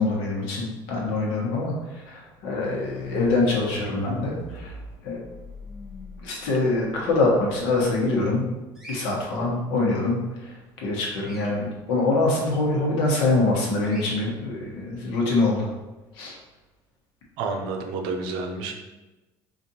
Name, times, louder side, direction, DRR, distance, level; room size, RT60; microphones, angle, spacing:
voice 1, 0.0-4.8 5.0-5.2 6.2-8.5 8.9-15.7 16.1-16.4, left 2 dB, 70° left, -3 dB, 1.2 m, -24 dB
sound 1, 2.6-8.1, left 3 dB, 45° left, 0.8 m, -39 dB
Bird vocalization bird call bird song, 8.7-9.1 11.2-11.5 13.8-14.1, right 1 dB, 5° right, 0.8 m, -42 dB
voice 2, 17.4-18.7, right 4 dB, 60° right, 3 dB, 0.6 m, -29 dB
4.9 x 2.5 x 2.8 m, 1.1 s
cardioid pair, 180°, 9 cm